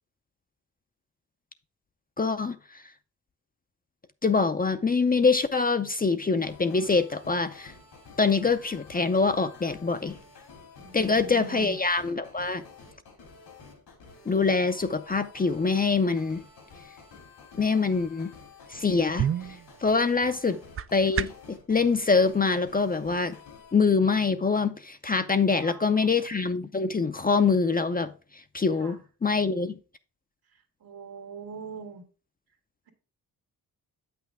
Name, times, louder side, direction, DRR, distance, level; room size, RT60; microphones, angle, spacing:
voice 1, 2.2-2.6 4.2-7.7 8.2-10.2 10.9-12.6 14.3-16.4 17.5-18.3 18.7-19.3 19.8-20.6 20.9-23.4 23.7-28.1 28.5-29.8, left 4 dB, 25° left, 0.5 m, -24 dB
sound 1, 6.4-23.7, left 5 dB, 80° left, 2.5 m, -50 dB
voice 2, 10.8-11.8 20.2-20.4 25.5-26.1 28.8-29.0 30.8-32.0, right 4 dB, 70° right, 1.9 m, -42 dB
sound 2, 18.7-21.6, right 9 dB, 35° right, 0.4 m, -33 dB
8.2 x 5.9 x 3.5 m
cardioid pair, 55°, 38 cm